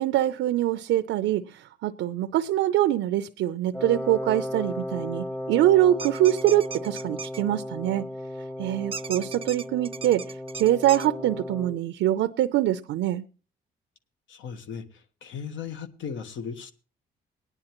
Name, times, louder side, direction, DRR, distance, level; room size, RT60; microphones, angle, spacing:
voice 1, 0.0-8.1 8.6-10.2 10.6-13.2, right 13 dB, 80° right, 0.5 m, -24 dB
Wind instrument woodwind instrument, 3.7-11.8, left 1 dB, 10° left, 0.9 m, -35 dB
sound 1, 6.0-7.4 8.9-11.1, right 6 dB, 30° right, 0.5 m, -37 dB
voice 2, 14.3-16.7, left 6 dB, 75° left, 1.2 m, -37 dB
19.0 x 10.0 x 2.9 m
cardioid pair, 90°, 20 cm